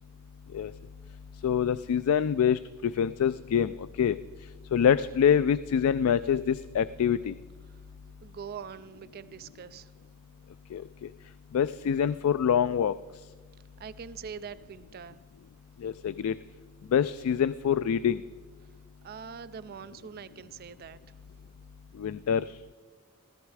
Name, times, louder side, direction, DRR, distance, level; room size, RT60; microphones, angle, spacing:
voice 1, 1.4-4.2 4.7-7.3 10.7-11.1 11.5-12.9 15.8-16.3 16.9-18.2 22.0-22.6, left 8 dB, 80° left, 15 dB, 0.3 m, -25 dB
voice 2, 8.2-9.9 13.8-15.2 19.0-21.0, right 7 dB, 45° right, 15 dB, 0.3 m, -43 dB
14.5 x 14.0 x 4.8 m, 1.4 s
head